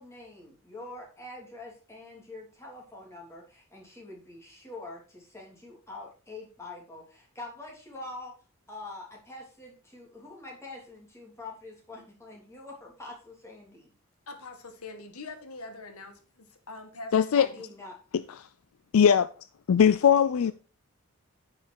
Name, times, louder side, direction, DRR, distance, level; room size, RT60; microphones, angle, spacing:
voice 1, 0.0-8.4 8.7-13.9 17.4-18.0, left 2 dB, 10° left, 3.1 m, -45 dB
voice 2, 14.3-17.7 20.0-20.1 20.4-20.5, left 3 dB, 90° left, 1.7 m, -44 dB
voice 3, 17.1-17.5 18.4-18.5 18.9-19.3 19.7-20.5, left 8 dB, 75° left, 0.4 m, -20 dB
9.6 x 5.8 x 4.6 m
head